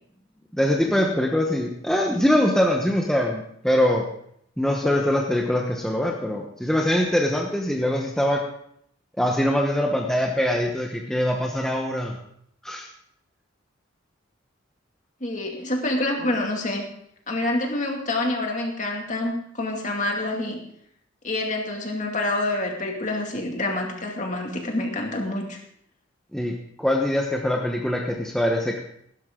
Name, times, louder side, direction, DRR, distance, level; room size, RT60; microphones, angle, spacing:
voice 1, 0.5-4.0 4.6-8.4 9.2-12.2 12.6-12.9 26.3-28.8, left 1 dB, 5° left, 0 dB, 1.0 m, -23 dB
voice 2, 15.2-16.9 17.3-20.6 21.2-25.6, left 2 dB, 35° left, 1 dB, 2.4 m, -27 dB
15.5 x 12.5 x 3.8 m, 0.70 s
head